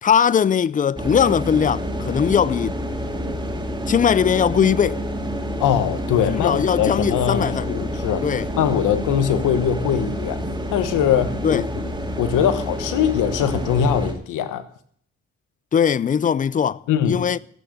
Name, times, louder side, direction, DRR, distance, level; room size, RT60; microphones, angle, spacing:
voice 1, 0.0-2.8 3.9-5.0 6.3-7.9 8.2-8.5 11.4-11.7 15.7-17.4, left 7 dB, 25° left, 0.4 m, -20 dB
sound 1, 1.0-14.1, equal, 15° right, 2.9 m, -28 dB
voice 2, 5.6-8.3 8.5-10.4 10.7-11.6 12.2-14.6 16.9-17.2, left 9 dB, 85° left, 1.2 m, -21 dB
15.0 x 6.6 x 7.9 m
cardioid pair, 90°, 30 cm